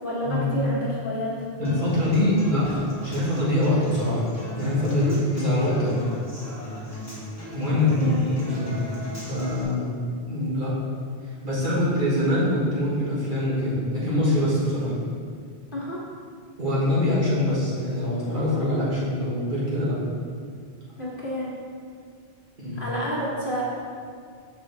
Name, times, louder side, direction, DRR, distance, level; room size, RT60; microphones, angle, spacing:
voice 1, 0.0-1.4 4.9-5.2 7.7-8.2 15.7-16.0 21.0-21.5 22.7-23.6, equal, 55° left, -6 dB, 1.6 m, -29 dB
Human voice / Acoustic guitar, 1.6-9.6, left 1 dB, 15° left, 1.3 m, -37 dB
voice 2, 1.6-4.2 4.5-6.0 7.5-8.8 9.3-9.9 10.3-10.7 11.4-14.9 16.6-20.0 22.6-22.8, left 1 dB, 55° right, -7 dB, 1.6 m, -24 dB
6.0 x 5.0 x 3.4 m, 2.2 s
omnidirectional pair, 1.0 m